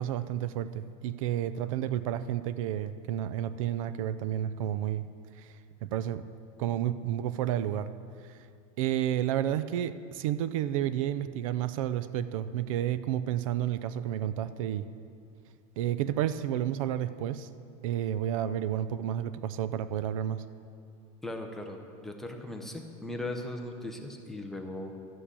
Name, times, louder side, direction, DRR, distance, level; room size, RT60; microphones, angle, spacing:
voice 1, 0.0-5.1 5.4-5.5 5.8-6.3 6.6-7.9 8.2-8.4 8.8-14.9 15.8-17.5 17.8-20.4, right 11 dB, 60° right, 14 dB, 0.5 m, -31 dB
voice 2, 21.2-25.0, left 1 dB, ahead, 2 dB, 0.5 m, -38 dB
12.5 x 6.0 x 8.2 m, 2.4 s
supercardioid pair, 180°, 19 cm